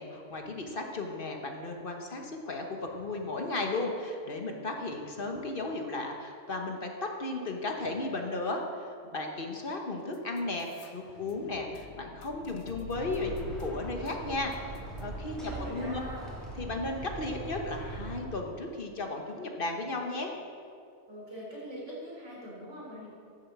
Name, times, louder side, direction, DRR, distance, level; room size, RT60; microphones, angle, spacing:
voice 1, 0.0-14.5 15.0-16.0 16.6-20.3, left 2 dB, 50° left, 2 dB, 1.3 m, -35 dB
sound 1, 10.1-15.1, left 4 dB, 80° left, 1.1 m, -47 dB
sound 2, 12.9-18.2, right 2 dB, ahead, 2.4 m, -41 dB
voice 2, 15.4-16.3 21.1-23.1, equal, 80° right, -5 dB, 3.8 m, -42 dB
11.0 x 7.2 x 7.3 m, 2.4 s
omnidirectional pair, 1.2 m